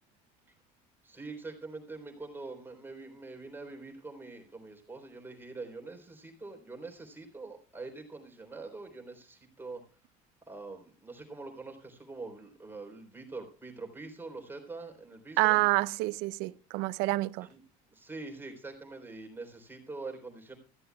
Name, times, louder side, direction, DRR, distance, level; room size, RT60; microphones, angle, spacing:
voice 1, 1.0-9.8 10.5-15.6 17.4-17.6 17.9-20.6, right 3 dB, 10° right, 3.7 m, -44 dB
voice 2, 15.4-17.5, right 22 dB, 80° right, 0.6 m, -28 dB
20.0 x 14.5 x 2.3 m
cardioid pair, 120°, 17 cm